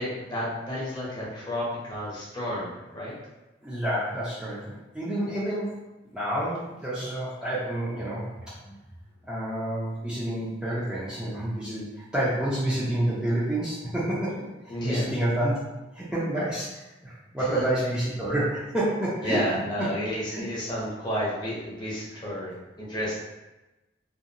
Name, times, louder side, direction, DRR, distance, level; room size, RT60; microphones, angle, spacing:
voice 1, 0.0-3.1 14.7-15.1 17.5-17.6 19.2-23.1, equal, 25° left, -7 dB, 0.8 m, -31 dB
voice 2, 3.6-5.8 6.1-8.3 8.7-8.8 9.2-15.6 15.9-19.5 19.8-19.9 20.3-20.4, right 1 dB, 5° right, -10 dB, 0.5 m, -29 dB
2.5 x 2.2 x 2.7 m, 1.0 s
head